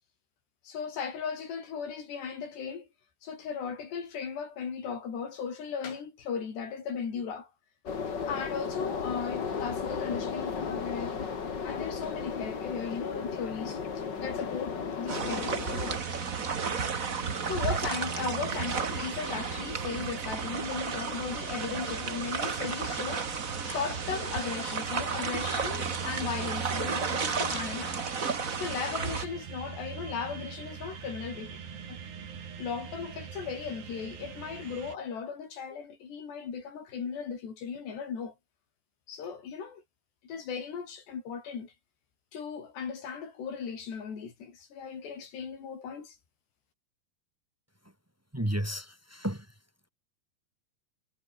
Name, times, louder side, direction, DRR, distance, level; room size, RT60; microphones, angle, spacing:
voice 1, 0.7-2.9 3.2-7.5 8.2-11.2 11.6-15.5 17.0-17.1 17.4-23.3 23.6-31.6 31.9-32.0 32.6-38.3 39.1-39.8 40.2-41.7 42.3-46.2, left 6 dB, 80° left, 6.9 m, -37 dB
sound 1, 7.9-16.0, left 6 dB, 35° left, 2.0 m, -35 dB
sound 2, 15.1-29.2, right 5 dB, 50° right, 0.9 m, -33 dB
sound 3, 15.9-35.0, right 7 dB, 80° right, 6.1 m, -43 dB
voice 2, 48.3-49.4, right 1 dB, 20° right, 0.4 m, -32 dB
omnidirectional pair, 4.8 m